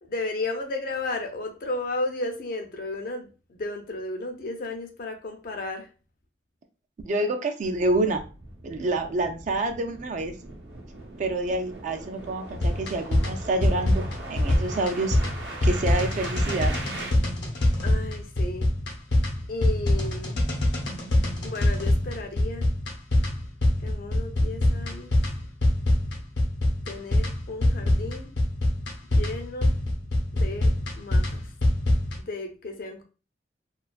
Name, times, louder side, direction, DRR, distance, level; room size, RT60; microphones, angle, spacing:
voice 1, 0.0-5.9 17.8-18.7 19.5-20.4 21.4-22.7 23.8-25.1 26.9-28.3 29.1-29.7 30.4-31.4 32.3-33.0, left 2 dB, 55° left, 0.5 m, -34 dB
voice 2, 7.0-8.2 8.6-10.3 11.2-15.2 15.6-16.8, right 2 dB, 45° right, 0.3 m, -27 dB
sound 1, 7.6-17.1, right 2 dB, 90° right, 0.7 m, -40 dB
sound 2, 12.6-32.2, left 1 dB, 90° left, 0.7 m, -24 dB
2.3 x 2.2 x 2.4 m
head